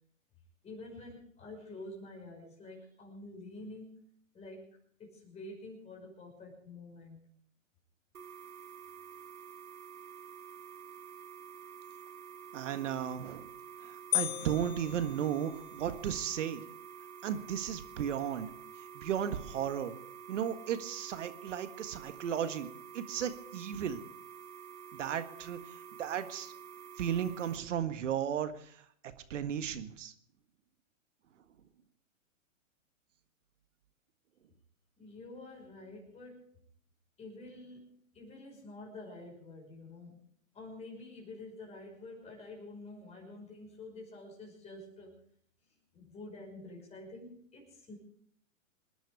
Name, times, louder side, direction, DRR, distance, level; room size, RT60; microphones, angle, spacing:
voice 1, 0.6-4.0 4.3-7.2 35.0-36.6 37.2-40.3 40.5-45.2 45.9-48.0, left 2 dB, 15° left, 0 dB, 5.9 m, -48 dB
sound 1, 8.1-27.6, right 8 dB, 90° right, 1.9 m, -49 dB
voice 2, 12.5-13.5 13.8-16.6 17.2-18.5 18.9-19.9 20.3-22.7 22.9-24.0 24.9-26.5 27.0-28.8 29.3-30.1, right 9 dB, 60° right, 10 dB, 1.8 m, -35 dB
sound 2, 14.1-15.9, left 18 dB, 40° left, 1.6 m, -36 dB
26.5 x 10.5 x 5.0 m, 0.62 s
hypercardioid pair, 135°, 40 cm